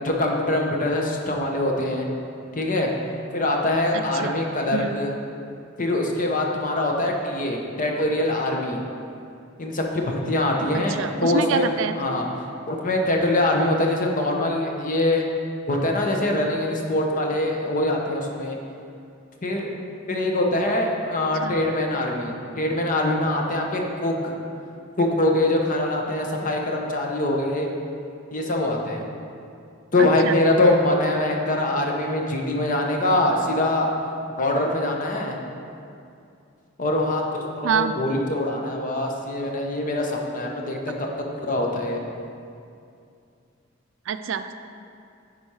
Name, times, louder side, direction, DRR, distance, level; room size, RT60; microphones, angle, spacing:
voice 1, 0.0-2.1 2.5-2.9 3.3-5.1 5.8-8.8 9.6-11.7 12.0-12.3 12.7-15.3 15.7-18.6 19.4-19.7 20.1-24.3 25.0-27.7 28.3-29.1 29.9-33.9 34.4-35.4 36.8-41.1 41.4-42.0, left 1 dB, 40° left, 1 dB, 0.9 m, -23 dB
voice 2, 3.9-4.3 4.7-5.0 10.9-11.9 21.4-21.6 30.0-30.3 37.6-38.0 44.1-44.5, right 6 dB, 70° right, 10 dB, 0.4 m, -26 dB
9.9 x 4.3 x 4.7 m, 2.5 s
head